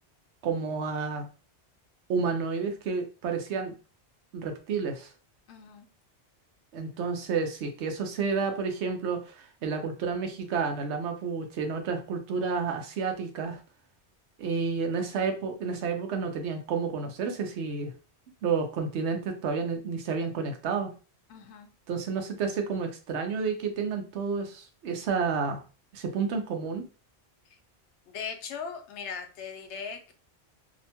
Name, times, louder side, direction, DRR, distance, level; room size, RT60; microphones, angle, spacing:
voice 1, 0.4-1.3 2.1-3.7 4.3-5.1 6.7-13.6 14.4-17.9 18.4-20.9 21.9-25.6 25.9-26.9, right 5 dB, 80° right, 5 dB, 0.9 m, -30 dB
voice 2, 5.5-5.9 21.3-21.7 27.5-27.6 28.1-30.1, left 6 dB, 80° left, 6 dB, 0.9 m, -39 dB
2.8 x 2.1 x 2.8 m, 0.35 s
omnidirectional pair, 1.2 m